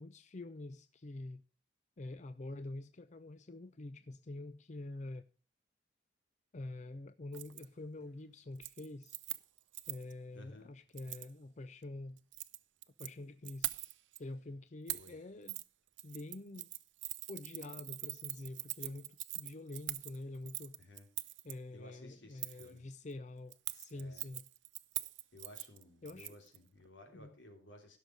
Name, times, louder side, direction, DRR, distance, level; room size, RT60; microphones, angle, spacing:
voice 1, 0.0-1.4 2.0-5.2 6.5-9.2 9.9-12.2 13.0-13.8 14.2-15.6 16.0-16.7 17.3-20.8 21.4-24.4 26.0-26.4 27.1-27.3, left 2 dB, 40° left, 0.5 m, -46 dB
Keys jangling, 7.3-7.6 8.0-8.3 8.6-10.1 11.0-11.3 12.2-13.1 13.4-14.2 14.9-15.1 15.5-15.7 16.0-21.5 22.4-22.7 23.5-26.6 26.9-27.0, right 18 dB, 80° right, 0.6 m, -43 dB
voice 2, 10.3-10.7 14.9-15.2 20.8-21.1 21.7-22.9 23.9-24.2 25.3-28.0, left 1 dB, 85° left, 3.5 m, -56 dB
16.0 x 6.5 x 5.3 m
head